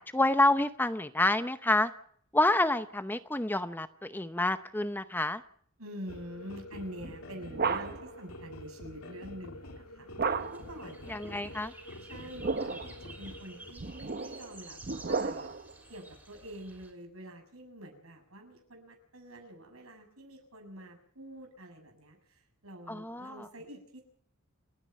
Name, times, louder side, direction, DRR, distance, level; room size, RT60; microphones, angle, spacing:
voice 1, 0.0-1.9 2.3-5.4 11.1-11.7 22.9-23.5, left 2 dB, 10° left, 11 dB, 0.7 m, -28 dB
voice 2, 5.8-11.4 12.1-14.8 15.1-15.5 15.9-24.0, equal, 80° right, 4 dB, 7.2 m, -46 dB
sound 1, 6.1-13.7, left 1 dB, 85° left, 2.7 m, -47 dB
sound 2, 7.0-8.2 10.2-10.8 12.2-13.0 13.8-15.7, right 4 dB, 45° right, 0.9 m, -33 dB
sound 3, 10.4-16.9, right 2 dB, 10° right, 3.8 m, -52 dB
29.0 x 9.8 x 9.1 m, 0.63 s
head